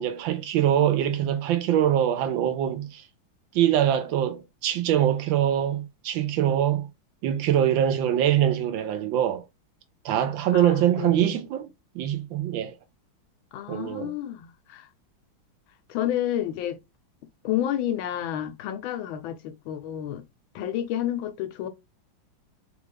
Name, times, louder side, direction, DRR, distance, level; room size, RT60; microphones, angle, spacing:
voice 1, 0.0-3.0 3.5-6.9 7.2-9.4 10.0-11.7 11.9-12.7 13.7-14.1, right 11 dB, 75° right, 1.3 m, -23 dB
voice 2, 10.5-11.4 13.5-14.9 15.9-16.8 17.4-20.2 20.5-21.7, left 11 dB, 80° left, 1.4 m, -30 dB
3.3 x 2.4 x 3.2 m
omnidirectional pair, 2.2 m